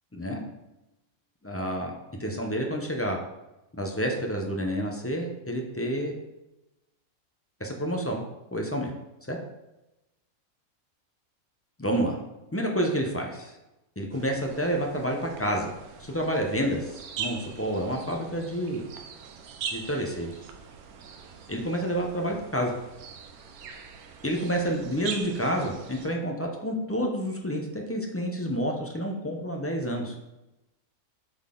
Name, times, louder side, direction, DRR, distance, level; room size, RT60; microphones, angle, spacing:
voice 1, 1.4-1.9 2.2-3.2 3.7-6.1 7.6-8.2 8.5-8.9 9.3-9.4 11.8-12.2 12.5-13.5 14.0-15.7 16.0-18.8 19.7-20.3 21.5-22.7 24.2-30.1, equal, 20° left, 1 dB, 0.4 m, -29 dB
sound 1, 14.1-26.1, right 6 dB, 85° right, 1.2 m, -42 dB
7.8 x 3.9 x 3.8 m, 0.97 s
omnidirectional pair, 1.5 m